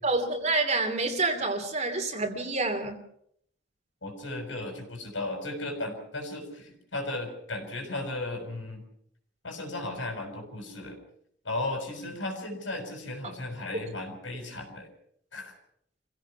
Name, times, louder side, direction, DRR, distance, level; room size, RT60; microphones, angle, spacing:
voice 1, 0.0-3.0, right 3 dB, 40° right, 4 dB, 2.8 m, -28 dB
voice 2, 4.0-8.8 9.4-11.0 11.4-14.9 15.3-15.5, left 2 dB, 85° left, 4 dB, 6.2 m, -35 dB
27.0 x 16.5 x 5.9 m, 0.70 s
head